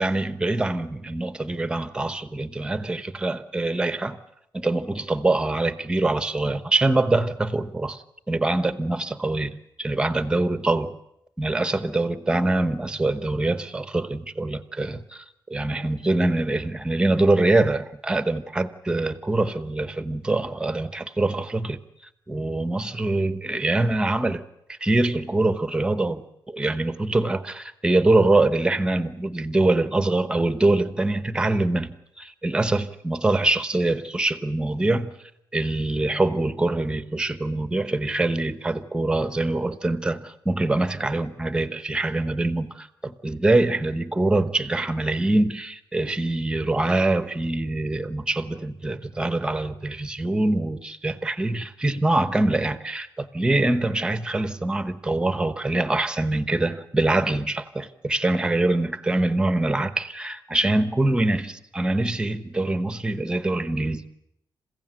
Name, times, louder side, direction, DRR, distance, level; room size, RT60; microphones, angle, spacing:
voice 1, 0.0-4.2 4.5-11.0 11.4-15.2 15.5-21.8 22.3-24.4 24.7-35.1 35.5-64.1, right 2 dB, 10° right, 1.0 m, -24 dB
28.0 x 16.0 x 8.9 m
wide cardioid pair, 170°, 8 cm